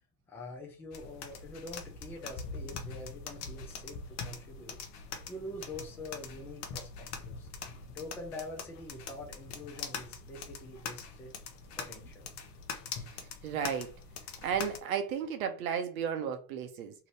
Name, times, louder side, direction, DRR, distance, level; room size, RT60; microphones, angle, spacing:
voice 1, 0.3-4.8 5.3-7.5 7.9-11.3 11.8-12.3, left 2 dB, 5° left, 0.4 m, -45 dB
sound 1, 0.9-14.8, left 5 dB, 35° left, 0.7 m, -43 dB
voice 2, 13.1-13.9 14.4-16.9, right 8 dB, 60° right, 0.7 m, -34 dB
2.8 x 2.5 x 3.2 m
hypercardioid pair, 105°, 48 cm